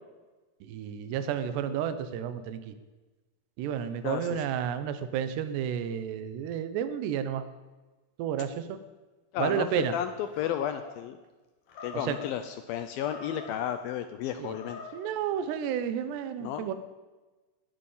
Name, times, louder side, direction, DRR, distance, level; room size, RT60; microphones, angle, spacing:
voice 1, 0.7-2.7 3.6-7.5 8.2-8.8 9.4-9.9 12.1-12.2 14.4-14.6 14.9-16.7, right 8 dB, 85° right, 12 dB, 3.1 m, -31 dB
voice 2, 4.0-4.5 9.3-11.2 11.8-14.8 16.4-16.7, left 10 dB, 80° left, 9 dB, 2.2 m, -33 dB
Animal, 10.3-11.0 11.7-12.3 12.9-13.7 14.4-15.1, left 4 dB, 55° left, 3.2 m, -45 dB
19.5 x 8.4 x 7.3 m, 1.2 s
omnidirectional pair, 4.8 m